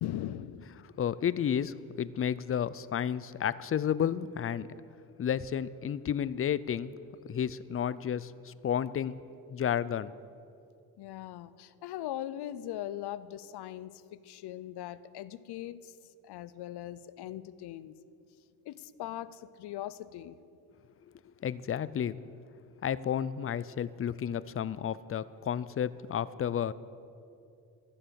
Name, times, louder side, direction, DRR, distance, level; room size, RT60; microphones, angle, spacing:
voice 1, 0.0-0.8 11.0-16.0 16.2-18.0 18.7-20.4, left 12 dB, 85° left, 17 dB, 0.7 m, -40 dB
voice 2, 1.0-4.7 5.2-6.9 7.2-9.2 9.5-10.1 21.4-22.2 22.8-26.7, left 9 dB, 35° left, 18 dB, 0.5 m, -31 dB
14.5 x 12.0 x 7.0 m, 2.6 s
cardioid pair, 105°, 38 cm